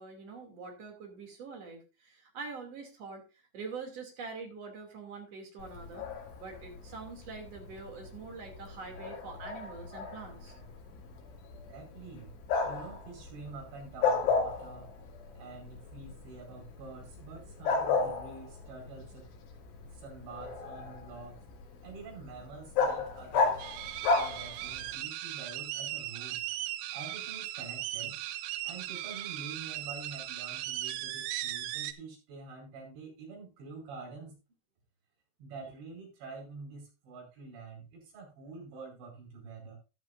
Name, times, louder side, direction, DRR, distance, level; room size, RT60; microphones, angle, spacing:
voice 1, 0.0-3.2 3.5-6.1 6.4-10.5, right 4 dB, 40° right, 2 dB, 3.1 m, -44 dB
Bark, 5.6-25.0, left 4 dB, 75° left, 4.8 m, -35 dB
voice 2, 11.7-12.3 12.6-14.9 15.4-19.3 19.8-21.4 21.8-23.6 24.1-26.5 26.9-28.2 28.6-34.4 35.4-39.8, right 4 dB, 65° right, 0 dB, 6.9 m, -47 dB
sound 1, 23.6-31.9, right 13 dB, 85° right, 3.4 m, -38 dB
14.0 x 11.0 x 2.6 m, 0.30 s
omnidirectional pair, 5.6 m